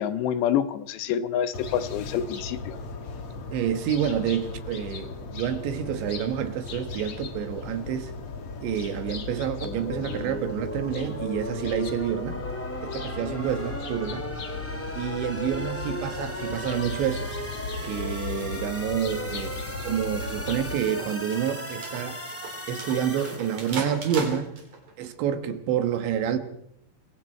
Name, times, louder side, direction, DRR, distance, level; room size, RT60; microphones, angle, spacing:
voice 1, 0.0-2.8, left 9 dB, 80° left, 3.2 m, -27 dB
Princess Ave, 1.5-20.8, left 4 dB, 50° left, 1.8 m, -37 dB
voice 2, 3.5-8.1 8.6-12.4 12.8-14.2 15.0-17.3 17.8-19.6 19.8-22.2 22.7-24.5 25.0-26.4, right 9 dB, 80° right, 3.7 m, -28 dB
sound 1, 9.6-23.8, equal, 10° left, 0.6 m, -36 dB
sound 2, 20.0-24.9, right 3 dB, 40° right, 4.7 m, -37 dB
26.5 x 22.5 x 4.5 m
omnidirectional pair, 5.1 m